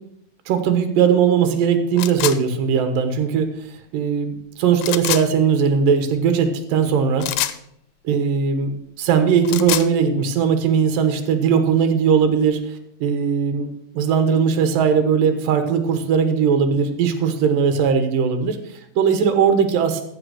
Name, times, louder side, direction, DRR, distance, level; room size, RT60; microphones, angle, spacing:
voice 1, 0.5-3.5 3.9-7.3 8.0-8.7 9.0-12.6 13.0-13.7 13.9-20.0, right 6 dB, 80° right, 7 dB, 2.9 m, -19 dB
sound 1, 2.0-2.4 4.8-5.2 7.2-7.6 9.3-9.9, left 14 dB, 85° left, 2.4 m, -24 dB
14.5 x 5.9 x 6.3 m, 0.74 s
omnidirectional pair, 3.9 m